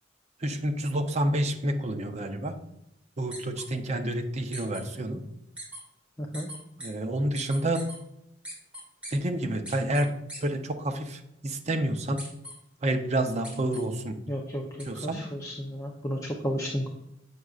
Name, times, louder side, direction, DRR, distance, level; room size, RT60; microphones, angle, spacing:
voice 1, 0.4-2.6 3.2-5.2 6.8-7.8 9.1-10.1 10.4-12.2 12.8-14.2 14.9-15.2, right 1 dB, 35° right, 6 dB, 0.6 m, -29 dB
sound 1, 3.3-3.6 4.5-4.8 5.6-5.8 6.3-6.9 7.3-8.0 8.4-9.1 9.6-10.0 10.3-10.4 12.2-12.5 13.4-13.8 14.8-14.9, right 1 dB, 5° right, 2.6 m, -40 dB
voice 2, 6.2-6.5 14.3-16.9, equal, 15° left, 0 dB, 0.6 m, -33 dB
7.8 x 6.1 x 2.4 m, 0.82 s
head